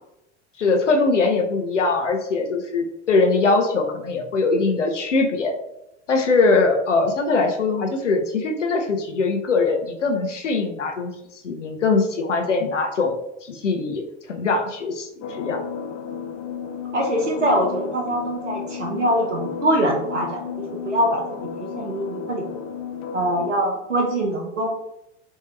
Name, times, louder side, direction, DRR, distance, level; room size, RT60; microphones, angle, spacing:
voice 1, 0.6-5.5 6.1-11.1 11.4-13.1 13.4-14.0 14.3-15.6, left 3 dB, 80° left, 4 dB, 0.7 m, -21 dB
sound 1, 15.2-23.5, left 6 dB, 35° left, 0.4 m, -33 dB
voice 2, 16.9-22.5 23.1-24.7, right 1 dB, 85° right, 0 dB, 0.7 m, -23 dB
3.6 x 2.6 x 3.2 m, 0.85 s
figure-of-eight pair, 85°, 36 cm